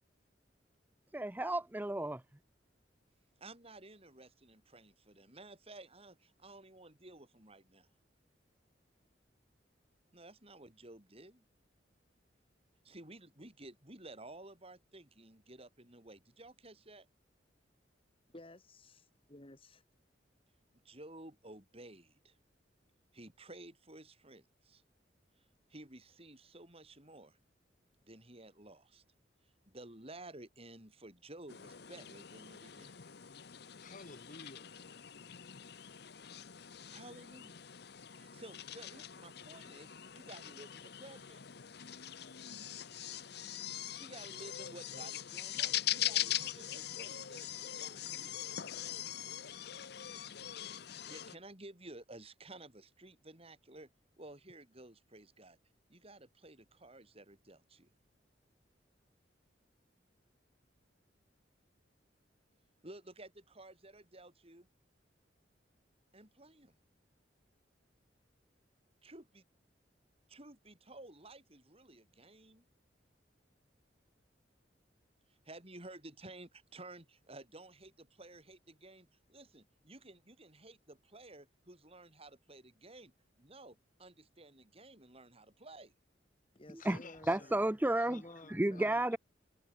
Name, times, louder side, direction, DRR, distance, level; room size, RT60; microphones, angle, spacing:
voice 1, 1.1-2.2 86.7-87.0 87.3-88.2 88.5-89.2, right 1 dB, 10° right, 0.6 m, -32 dB
voice 2, 3.4-7.9 10.1-11.4 12.8-17.1 20.8-22.4 23.1-24.8 25.7-27.4 28.0-29.0 29.7-33.0 36.9-37.6 38.2-41.4 44.0-48.3 51.1-53.9 54.2-55.6 55.9-57.9 62.8-64.7 66.1-66.8 69.0-69.4 70.3-72.6 75.5-85.9, right 2 dB, 35° right, 7.5 m, -54 dB
voice 3, 18.3-19.8 86.5-87.6 88.1-89.0, left 1 dB, 30° left, 2.2 m, -54 dB
sound 1, 31.5-51.3, left 11 dB, 60° left, 0.9 m, -42 dB
voice 4, 33.8-34.7 48.0-48.8 86.8-87.5 88.0-89.2, left 3 dB, 45° left, 1.6 m, -54 dB
head